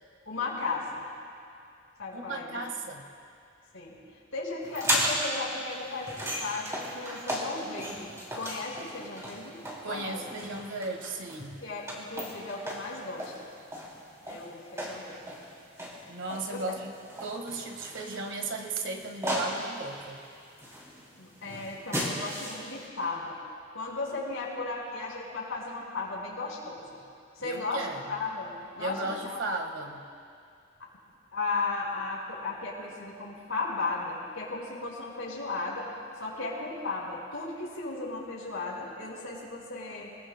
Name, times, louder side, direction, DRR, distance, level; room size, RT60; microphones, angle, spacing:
voice 1, 0.2-1.1 2.0-2.6 3.7-4.0 4.3-10.2 11.6-13.5 14.2-15.2 16.5-16.7 21.2-23.4 23.7-27.0 27.4-29.5 31.3-35.9 36.2-40.1, left 3 dB, 90° left, -3 dB, 4.8 m, -35 dB
voice 2, 2.1-3.1 9.8-11.6 16.1-20.2 27.4-28.2 28.8-30.0, right 3 dB, 65° right, 3 dB, 1.6 m, -36 dB
sound 1, 4.6-22.9, equal, 15° right, 2.9 m, -36 dB
28.0 x 20.5 x 2.2 m, 2.4 s
head